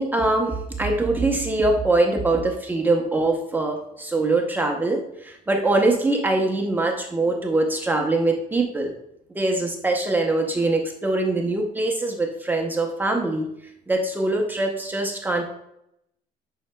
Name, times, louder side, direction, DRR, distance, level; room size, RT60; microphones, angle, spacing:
voice 1, 0.0-8.9 9.3-13.5 13.9-15.4, right 2 dB, 10° right, 1 dB, 0.7 m, -23 dB
10.5 x 5.6 x 2.2 m, 0.79 s
cardioid pair, 155°, 16 cm